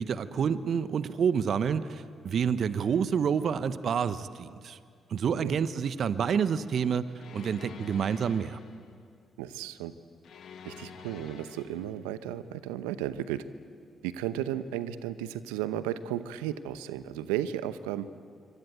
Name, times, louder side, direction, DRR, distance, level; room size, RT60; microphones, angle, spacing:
voice 1, 0.0-4.8 5.1-7.1 7.3-8.6, right 7 dB, 60° right, 14 dB, 0.9 m, -28 dB
voice 2, 5.3-5.6 9.4-9.9 10.6-13.4 14.0-18.1, right 11 dB, 80° right, 14 dB, 0.8 m, -34 dB
sound 1, 7.2-8.9 10.2-12.0, left 6 dB, 65° left, 1.7 m, -47 dB
26.0 x 24.0 x 9.2 m, 2.2 s
hypercardioid pair, 45°, 0 cm